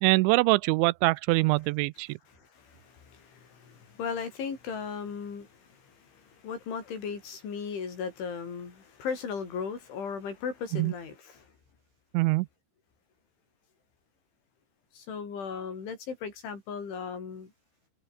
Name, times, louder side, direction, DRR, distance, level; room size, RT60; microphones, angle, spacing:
voice 1, 0.0-2.2 10.7-10.9 12.1-12.5, right 23 dB, 85° right, 2.9 m, -24 dB
voice 2, 2.3-11.5 14.9-17.5, left 6 dB, 85° left, 8.2 m, -37 dB
omnidirectional pair, 5.3 m